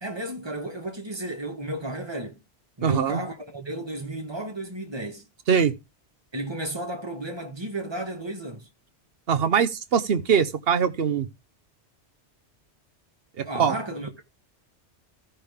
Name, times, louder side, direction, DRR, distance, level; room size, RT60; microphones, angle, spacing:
voice 1, 0.0-2.4 2.8-5.3 6.3-8.7 13.4-14.2, right 1 dB, 25° right, 1.5 m, -33 dB
voice 2, 2.8-3.2 5.5-5.7 9.3-11.3 13.4-13.7, right 7 dB, 60° right, 1.0 m, -22 dB
15.0 x 5.6 x 3.5 m
omnidirectional pair, 1.2 m